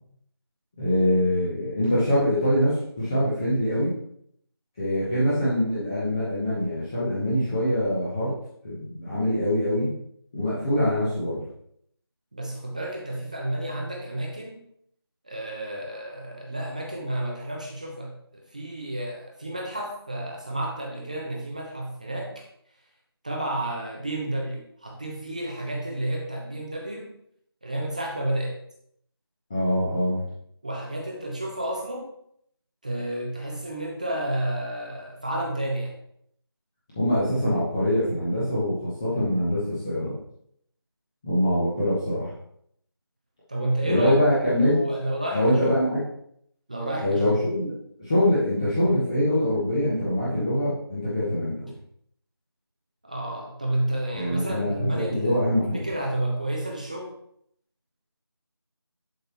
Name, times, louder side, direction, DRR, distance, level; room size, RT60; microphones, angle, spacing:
voice 1, 0.8-3.9 4.8-8.3 8.6-9.9 10.3-11.4 29.5-30.2 37.0-40.2 41.2-42.3 43.8-44.8 45.3-46.0 47.0-47.7 48.0-51.7 54.1-55.9, left 1 dB, 10° left, -10 dB, 0.9 m, -24 dB
voice 2, 12.3-14.6 15.2-22.4 23.2-27.1 27.6-28.6 30.6-32.1 32.8-35.9 43.5-44.2 44.5-45.8 46.7-47.4 53.0-55.4 55.7-57.1, right 1 dB, 15° right, -1 dB, 0.6 m, -31 dB
11.0 x 5.3 x 3.0 m, 0.70 s
figure-of-eight pair, 170°, 13 cm